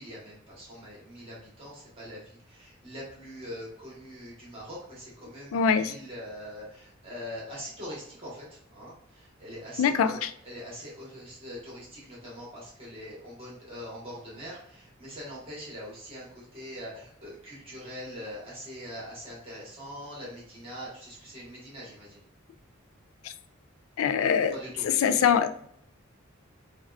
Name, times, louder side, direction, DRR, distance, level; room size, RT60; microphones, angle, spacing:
voice 1, 0.0-22.2 24.5-24.9, equal, 30° right, -6 dB, 1.4 m, -43 dB
voice 2, 5.5-5.9 9.8-10.3 24.0-24.5 24.8-25.7, left 7 dB, 85° left, 11 dB, 0.3 m, -23 dB
4.6 x 2.4 x 2.4 m, 0.68 s
head